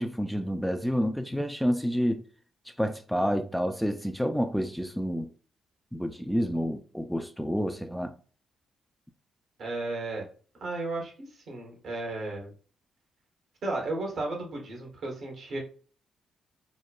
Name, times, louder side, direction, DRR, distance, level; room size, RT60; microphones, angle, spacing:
voice 1, 0.0-2.2 2.8-5.3 5.9-8.1, equal, ahead, 0.4 m, -29 dB
voice 2, 9.6-10.2 10.6-12.5 13.6-15.6, right 2 dB, 65° right, 1.1 m, -34 dB
2.9 x 2.1 x 2.3 m
hypercardioid pair, 45°, 0 cm